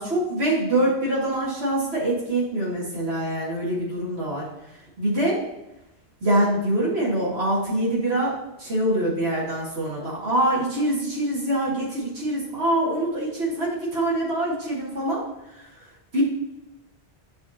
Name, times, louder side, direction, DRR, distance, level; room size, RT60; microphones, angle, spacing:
voice 1, 0.0-4.5 5.0-5.4 6.2-8.3 8.6-15.2 16.1-16.2, right 1 dB, 85° right, -7 dB, 2.4 m, -24 dB
9.3 x 5.0 x 2.9 m, 0.91 s
omnidirectional pair, 1.1 m